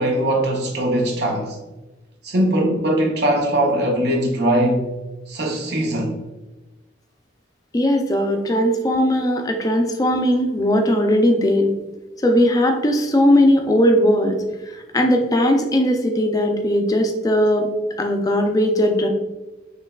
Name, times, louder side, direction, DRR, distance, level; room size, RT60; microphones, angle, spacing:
voice 1, 0.0-1.6 2.2-4.8 5.3-6.2, right 1 dB, 60° right, 0.7 m, -20 dB
voice 2, 7.7-11.7 12.2-14.4 14.7-17.7 18.0-19.1, equal, 20° left, 0.4 m, -18 dB
5.4 x 3.2 x 2.3 m
head